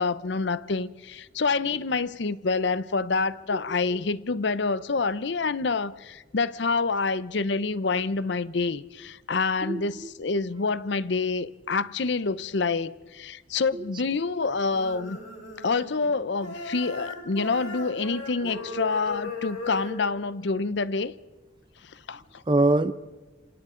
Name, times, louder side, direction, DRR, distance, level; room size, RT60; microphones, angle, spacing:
voice 1, 0.0-15.2 15.6-21.1 21.8-22.4, left 4 dB, 65° left, 0.7 m, -27 dB
voice 2, 3.5-4.0 9.6-10.1 13.7-14.0 22.5-22.9, right 2 dB, 25° right, 0.6 m, -26 dB
sound 1, 14.7-16.1 16.4-20.0, left 3 dB, 90° left, 4.4 m, -37 dB
27.5 x 27.5 x 3.8 m
head